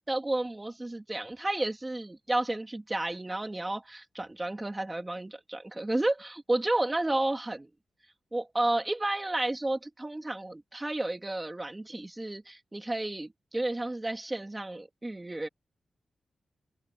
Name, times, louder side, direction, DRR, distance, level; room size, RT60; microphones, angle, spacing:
voice 1, 0.1-7.7 8.3-15.5, right 2 dB, 15° right, 3.4 m, -32 dB
open air
wide cardioid pair, 145°, 0 cm